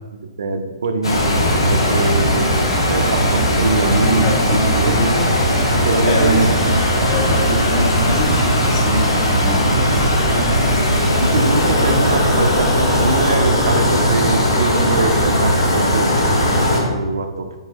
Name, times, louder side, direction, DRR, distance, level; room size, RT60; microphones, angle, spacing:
voice 1, 0.4-2.5 2.8-5.0 5.8-6.5 9.6-10.0 10.3-10.7 11.2-17.5, right 3 dB, 60° right, 6 dB, 0.8 m, -23 dB
sound 1, 1.0-16.8, equal, 70° left, 2.0 m, -17 dB
sound 2, 1.1-16.7, equal, ahead, 0.8 m, -31 dB
voice 2, 4.2-5.2 6.0-6.5 7.0-9.6, equal, 40° left, -1 dB, 1.5 m, -24 dB
9.2 x 4.8 x 3.0 m, 1.3 s
figure-of-eight pair, 120°, 3 cm